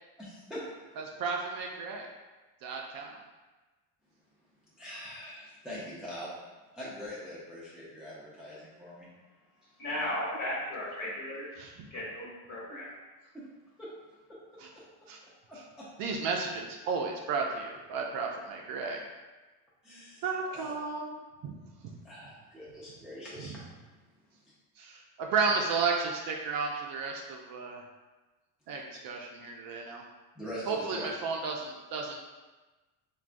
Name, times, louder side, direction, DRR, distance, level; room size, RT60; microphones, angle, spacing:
voice 1, 0.2-0.6 4.8-6.3 6.7-9.1 12.2-12.3 12.7-12.8 13.3-13.4 13.8-13.9 15.5-15.6 19.8-20.7 21.9-23.6 30.4-31.1, equal, ahead, -8 dB, 0.5 m, -43 dB
voice 2, 1.0-2.1 2.6-3.2 11.6-11.9 14.6-14.7 15.1-15.2 16.0-19.0 20.2-21.2 21.4-21.6 23.4-23.5 24.8-27.8 28.7-30.0 30.7-32.2, right 4 dB, 55° right, 0 dB, 0.5 m, -33 dB
voice 3, 9.8-11.5 11.9-12.9, left 1 dB, 45° left, -5 dB, 1.3 m, -35 dB
3.4 x 2.2 x 2.5 m, 1.2 s
cardioid pair, 120°, 43 cm